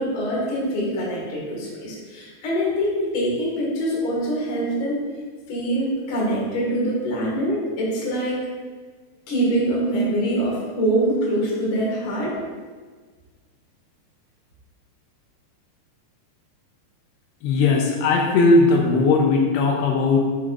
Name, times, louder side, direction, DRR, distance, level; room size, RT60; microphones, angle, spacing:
voice 1, 0.0-5.0 5.5-8.4 9.3-12.3, right 1 dB, 40° left, -5 dB, 2.2 m, -24 dB
voice 2, 17.4-20.2, left 3 dB, 85° left, 0 dB, 2.9 m, -18 dB
7.8 x 7.7 x 2.6 m, 1.4 s
omnidirectional pair, 4.7 m